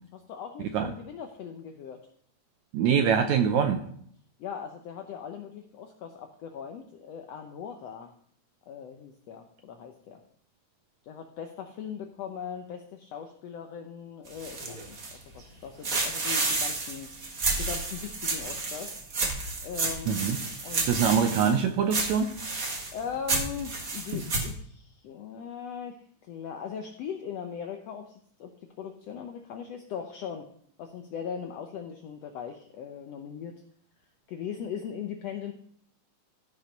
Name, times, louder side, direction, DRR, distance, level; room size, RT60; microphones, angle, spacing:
voice 1, 0.0-2.0 4.4-8.1 8.7-10.2 11.0-17.1 17.6-18.9 19.6-20.9 22.9-26.0 26.3-28.5 28.8-30.5 30.8-33.6 34.3-35.5, left 7 dB, 80° left, 4 dB, 1.4 m, -39 dB
voice 2, 2.7-3.8 20.1-20.4 20.8-22.3, right 7 dB, 80° right, 7 dB, 1.7 m, -24 dB
sound 1, 14.3-15.4 15.8-21.6 21.9-24.5, right 3 dB, 40° right, 1.3 m, -31 dB
15.0 x 5.5 x 5.1 m, 0.62 s
omnidirectional pair, 3.9 m